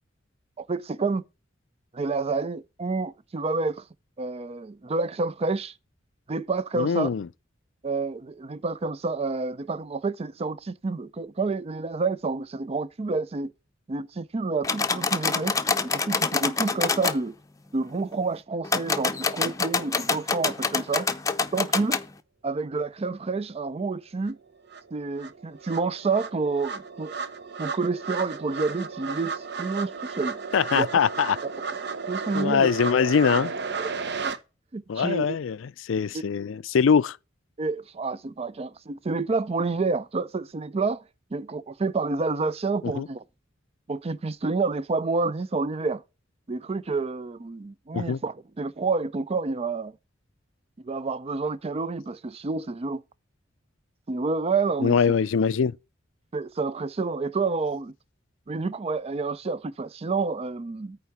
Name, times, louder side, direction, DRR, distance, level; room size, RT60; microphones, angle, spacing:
voice 1, 0.6-1.2 1.9-3.8 4.2-5.7 6.3-7.1 7.8-13.5 13.9-15.6 15.8-17.3 17.7-21.1 21.5-22.0 22.4-24.4 24.9-27.1 27.6-30.4 30.7-30.9 32.1-32.7 33.8-33.9 34.2-34.3 34.7-35.4 36.1-36.2 37.6-41.0 41.3-43.2 43.9-46.0 46.5-50.0 50.8-53.0 54.1-55.0 56.3-57.9 58.5-61.0, right 3 dB, 30° right, 0.5 m, -29 dB
voice 2, 6.7-7.3 30.5-31.4 32.3-33.5 34.9-37.2 42.8-43.1 47.9-48.2 54.8-55.8, left 6 dB, 85° left, 0.4 m, -23 dB
sound 1, 14.6-17.2 18.6-22.1, left 4 dB, 20° left, 0.6 m, -26 dB
sound 2, 24.3-24.4 24.7-34.4, right 5 dB, 60° right, 0.9 m, -33 dB
9.2 x 3.7 x 7.0 m
head